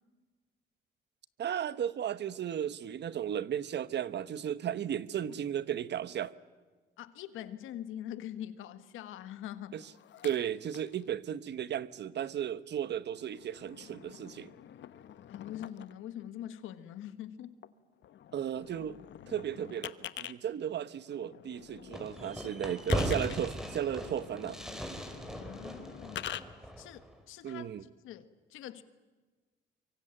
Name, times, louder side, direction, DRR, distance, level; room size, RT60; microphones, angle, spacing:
voice 1, 1.4-6.3 9.7-9.8 10.2-14.5 18.3-19.0 19.3-24.6 27.4-27.8, right 9 dB, 60° right, 1.2 m, -35 dB
voice 2, 7.0-9.8 15.3-17.6 25.3-26.4 26.8-28.8, left 11 dB, 90° left, 1.6 m, -44 dB
sound 1, 9.8-11.1 11.7-11.8 12.8-16.0 17.6-17.7 18.0-20.3 21.1-26.4, left 11 dB, 70° left, 1.2 m, -46 dB
Fireworks, 21.9-27.2, equal, 5° right, 4.5 m, -38 dB
24.5 x 24.5 x 9.0 m
cardioid pair, 90°, 20 cm